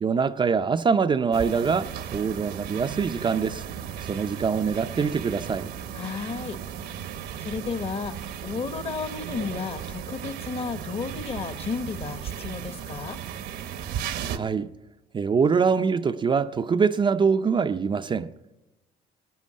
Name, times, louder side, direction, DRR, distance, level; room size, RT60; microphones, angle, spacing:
voice 1, 0.0-3.6 4.1-5.7 14.3-14.7 15.1-18.3, right 5 dB, 30° right, 0.5 m, -24 dB
sound 1, 1.3-14.4, right 9 dB, 75° right, 1.1 m, -36 dB
voice 2, 5.9-6.6 7.4-13.2, left 5 dB, 35° left, 1.1 m, -33 dB
18.0 x 9.2 x 7.4 m
cardioid pair, 110°, 17 cm